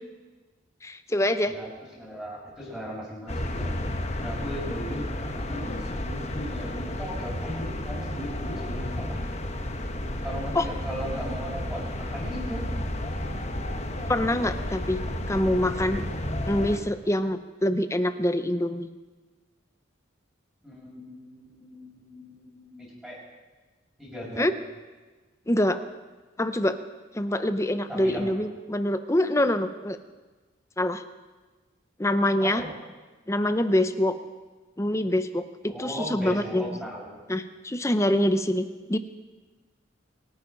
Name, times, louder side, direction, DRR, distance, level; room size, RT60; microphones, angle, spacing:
voice 1, 0.8-1.5 10.5-10.6 14.1-15.0 15.3-16.0 16.5-18.9 24.4-24.5 25.5-25.8 26.4-26.8 27.1-30.0 30.8-31.0 32.0-32.6 33.3-34.2 34.8-35.5 35.8-36.6 37.3-39.0, left 1 dB, 15° left, 10 dB, 0.7 m, -25 dB
voice 2, 1.4-3.7 4.2-9.2 10.2-12.7 20.6-23.2 24.0-24.5 27.9-28.4 32.4-32.7 35.7-37.2, equal, ahead, -6 dB, 6.6 m, -37 dB
sound 1, 3.3-16.8, left 1 dB, 35° left, 1.1 m, -32 dB
25.0 x 9.3 x 5.3 m, 1.3 s
head